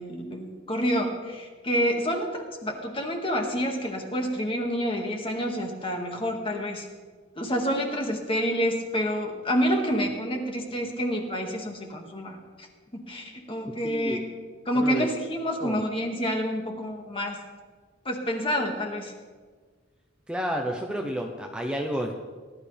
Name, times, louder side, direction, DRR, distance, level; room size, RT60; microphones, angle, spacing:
voice 1, 0.0-2.3 2.6-6.9 7.4-12.7 12.9-14.2 14.7-17.4 18.1-19.1, equal, 30° left, 1 dB, 2.1 m, -28 dB
voice 2, 13.8-14.2 14.7-15.1 15.6-15.8 20.3-22.1, equal, 5° right, 1 dB, 0.9 m, -30 dB
19.0 x 12.5 x 3.5 m, 1.5 s
head